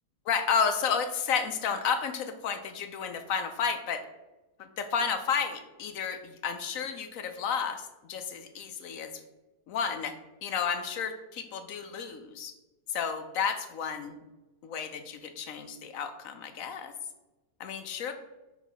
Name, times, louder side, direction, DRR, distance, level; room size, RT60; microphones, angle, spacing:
voice 1, 0.3-4.0 4.6-9.1 9.7-12.5 12.9-14.2 14.6-16.9 17.6-18.1, left 6 dB, 65° left, 8 dB, 0.9 m, -32 dB
6.2 x 3.9 x 5.5 m, 1.1 s
omnidirectional pair, 1.7 m